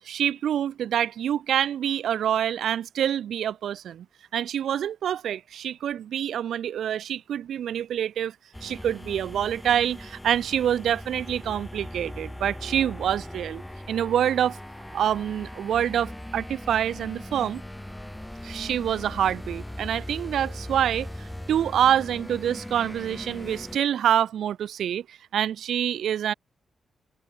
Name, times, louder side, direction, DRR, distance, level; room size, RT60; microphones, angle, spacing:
voice 1, 0.0-4.0 4.3-8.3 8.6-13.6 13.9-14.6 14.9-17.6 18.4-26.3, right 10 dB, 85° right, 1.4 m, -26 dB
sound 1, 8.5-23.8, left 1 dB, 5° left, 5.2 m, -39 dB
wide cardioid pair, 130°, 0 cm